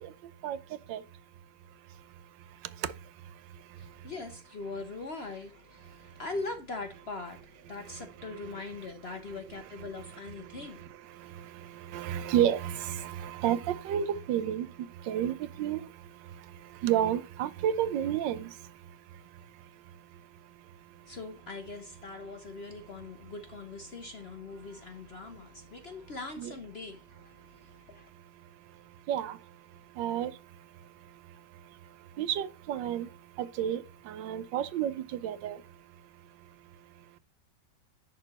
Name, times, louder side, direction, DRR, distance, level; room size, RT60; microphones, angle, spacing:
voice 1, 3.7-10.8 21.0-28.1, left 3 dB, 55° left, 0.7 m, -41 dB
voice 2, 11.7-14.7 15.1-15.8 16.8-18.5 26.4-26.5 29.1-29.4 30.0-30.3 32.2-33.1 33.4-35.6, right 10 dB, 85° right, 1.3 m, -30 dB
10.5 x 4.1 x 4.1 m
omnidirectional pair, 1.9 m